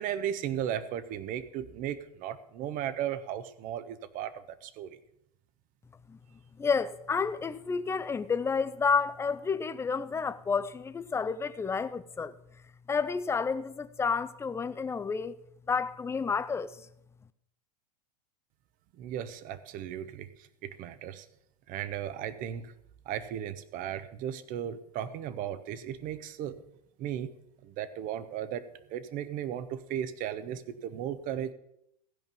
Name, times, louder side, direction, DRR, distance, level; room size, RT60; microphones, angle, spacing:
voice 1, 0.0-5.0 19.0-21.3 21.7-22.7 23.0-26.6 27.0-27.3 27.6-28.6 28.9-31.5, right 10 dB, 40° right, 1.0 m, -36 dB
voice 2, 6.6-12.3 12.9-15.4 15.7-16.8, left 5 dB, 15° left, 0.6 m, -30 dB
15.5 x 5.3 x 7.3 m
hypercardioid pair, 100°, 20 cm